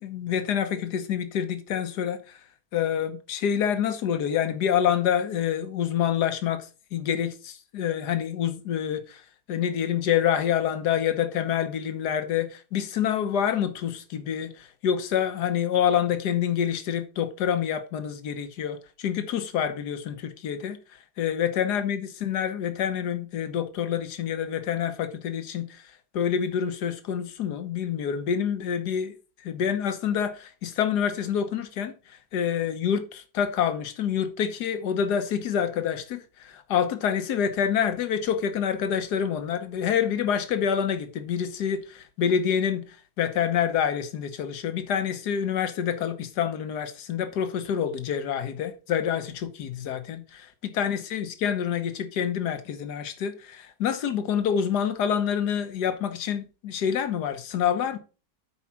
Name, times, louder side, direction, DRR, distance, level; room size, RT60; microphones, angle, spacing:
voice 1, 0.0-2.4 2.7-9.2 9.5-20.8 21.2-25.9 26.1-29.1 29.4-42.8 43.2-58.0, left 8 dB, 70° left, 1.6 m, -27 dB
8.4 x 4.9 x 5.8 m
omnidirectional pair, 1.9 m